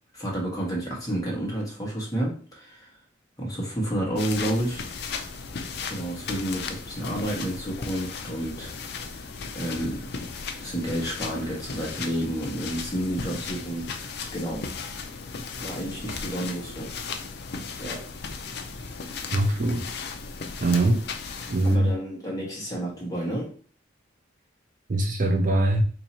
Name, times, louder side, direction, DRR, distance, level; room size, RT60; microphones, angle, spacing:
voice 1, 0.1-2.9 3.4-5.4 5.9-8.7 9.1-9.3 9.5-10.1 10.6-14.7 15.6-16.9 17.8-18.1 21.6-23.5, right 1 dB, 20° left, 1.3 m, -30 dB
sound 1, 4.2-21.8, left 5 dB, 60° left, 0.5 m, -36 dB
voice 2, 19.3-19.8 20.6-21.0 21.5-21.9 24.9-25.8, right 2 dB, 45° right, 0.5 m, -22 dB
2.8 x 2.7 x 4.1 m
head